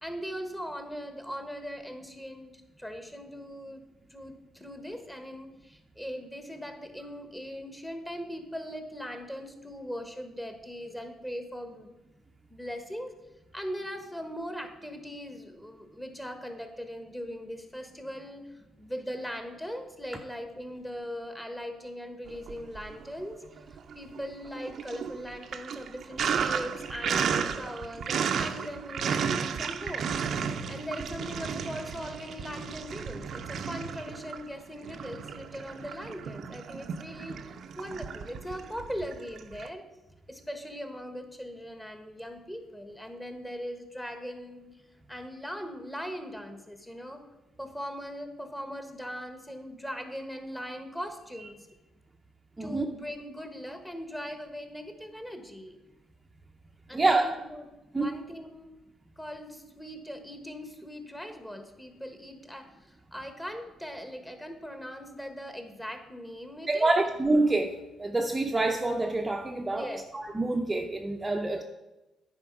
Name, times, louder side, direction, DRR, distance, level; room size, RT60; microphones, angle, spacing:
voice 1, 0.0-2.5 2.8-3.8 4.1-11.9 12.5-13.1 13.5-18.5 18.8-23.4 23.7-30.2 30.7-37.4 37.8-39.9 40.3-44.7 45.1-47.2 47.6-51.7 52.6-55.8 56.9-57.6 58.0-58.8 59.2-67.1 69.6-70.1, equal, 10° left, 6 dB, 1.3 m, -40 dB
Sink (filling or washing), 22.3-23.2 23.6-39.7, right 7 dB, 65° right, 0.6 m, -33 dB
voice 2, 56.9-57.3 57.9-58.1 66.7-71.6, right 2 dB, 20° right, 2 dB, 0.6 m, -27 dB
9.8 x 4.4 x 5.9 m, 1.0 s
cardioid pair, 90°, 0 cm